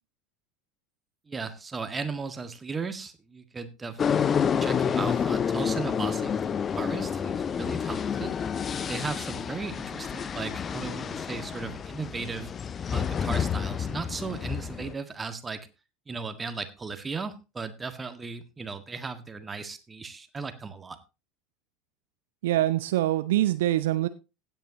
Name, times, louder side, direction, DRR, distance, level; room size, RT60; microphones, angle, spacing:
voice 1, 1.3-4.2 4.6-8.4 8.7-12.5 12.9-15.7 16.1-21.0, right 4 dB, 20° right, 9 dB, 1.7 m, -36 dB
sound 1, 4.0-14.9, left 7 dB, 25° left, 0.5 m, -29 dB
voice 2, 22.4-24.1, right 14 dB, 60° right, 14 dB, 0.5 m, -24 dB
16.5 x 9.3 x 2.9 m, 0.28 s
figure-of-eight pair, 75°, 0 cm